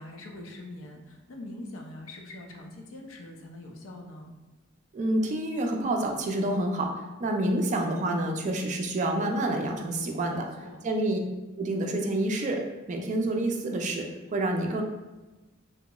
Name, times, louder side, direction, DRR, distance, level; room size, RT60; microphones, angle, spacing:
voice 1, 0.0-4.3 10.3-10.8, left 1 dB, 75° left, 1 dB, 0.5 m, -43 dB
voice 2, 4.9-10.5 10.8-11.2 11.6-14.1 14.3-14.8, right 1 dB, 35° right, 2 dB, 0.3 m, -28 dB
2.9 x 2.9 x 2.2 m, 1.1 s
head